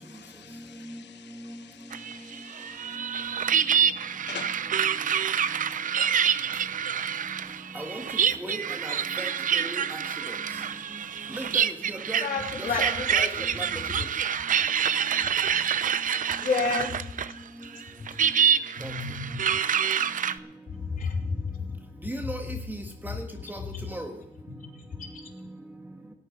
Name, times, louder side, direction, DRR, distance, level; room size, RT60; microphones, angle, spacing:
voice 1, 0.0-3.0 4.3-4.6 5.7-5.8, left 8 dB, 60° left, 10 dB, 1.2 m, -46 dB
sound 1, 1.9-17.4 17.6-20.4, right 8 dB, 40° right, 0.6 m, -27 dB
voice 2, 8.4-10.0 11.3-12.2 12.6-13.3 13.5-13.7 18.8-18.9 22.0-23.1 23.5-23.6 23.9-24.1, right 1 dB, 10° right, 3 dB, 1.6 m, -37 dB
voice 3, 12.2-13.5 14.0-14.1 16.4-17.1 17.9-18.3 18.8-19.6 20.7-22.5 23.1-23.2 23.7-23.9 24.5-25.3, left 4 dB, 45° left, 1 dB, 3.4 m, -32 dB
17.5 x 8.6 x 5.2 m, 0.81 s
cardioid pair, 90°, 20 cm